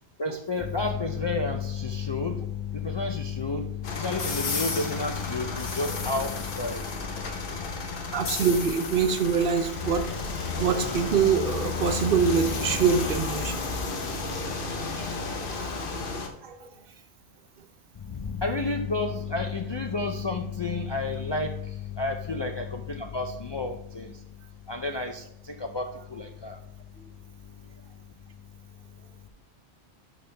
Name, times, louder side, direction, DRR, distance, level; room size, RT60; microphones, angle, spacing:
voice 1, 0.2-6.8 18.1-24.1 24.7-26.6, left 3 dB, 40° left, 3 dB, 0.4 m, -30 dB
sound 1, 3.8-16.3, left 4 dB, 55° left, 1.0 m, -32 dB
voice 2, 8.1-10.0 10.6-13.6 14.8-15.1 15.5-15.7 16.4-16.6, right 6 dB, 60° right, 8 dB, 0.8 m, -24 dB
11.0 x 4.2 x 3.2 m, 0.78 s
omnidirectional pair, 1.1 m